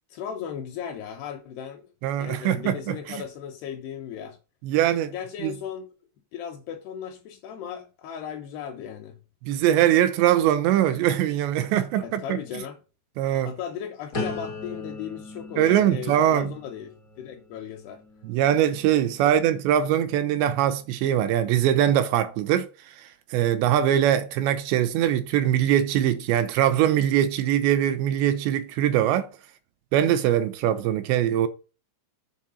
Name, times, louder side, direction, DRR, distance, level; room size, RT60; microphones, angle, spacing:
voice 1, 0.1-1.9 2.2-4.4 5.1-5.9 6.3-9.2 12.0-12.8 13.4-18.0, left 8 dB, 75° left, 2.8 m, -36 dB
voice 2, 2.0-3.2 4.6-5.1 5.4-5.5 9.4-12.4 13.2-13.5 15.6-16.5 18.2-22.7 23.3-29.3 29.9-31.5, right 11 dB, 85° right, 2.9 m, -22 dB
sound 1, 14.1-20.0 20.5-20.9, left 3 dB, 55° left, 0.9 m, -39 dB
7.5 x 4.6 x 7.0 m
omnidirectional pair, 5.3 m